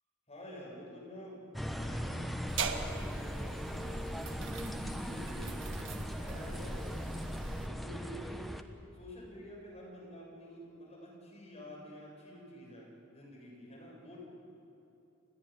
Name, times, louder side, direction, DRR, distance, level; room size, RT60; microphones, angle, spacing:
voice 1, 0.3-1.4 1.7-5.6 5.9-8.5 8.9-14.2, equal, 30° left, -3 dB, 7.5 m, -49 dB
sound 1, 1.5-8.6, equal, ahead, 1.0 m, -39 dB
sound 2, 2.5-7.7, right 3 dB, 65° right, 1.5 m, -40 dB
30.0 x 12.5 x 9.9 m, 2.9 s
head